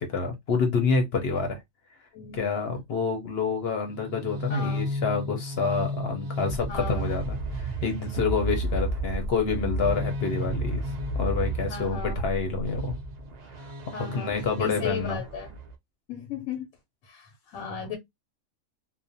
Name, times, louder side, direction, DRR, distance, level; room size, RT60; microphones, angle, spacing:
voice 1, 0.0-1.6 2.3-10.8 11.1-12.9 14.0-15.2, left 4 dB, 60° left, 0.7 m, -28 dB
voice 2, 2.1-2.6 4.5-4.9 6.7-7.1 11.7-12.2 12.9-13.0 13.9-14.3 14.6-15.5 16.1-16.7 17.0-18.0, left 7 dB, 85° left, 1.0 m, -36 dB
sound 1, 3.9-15.7, right 1 dB, 85° right, 0.3 m, -32 dB
2.4 x 2.1 x 2.6 m
omnidirectional pair, 1.4 m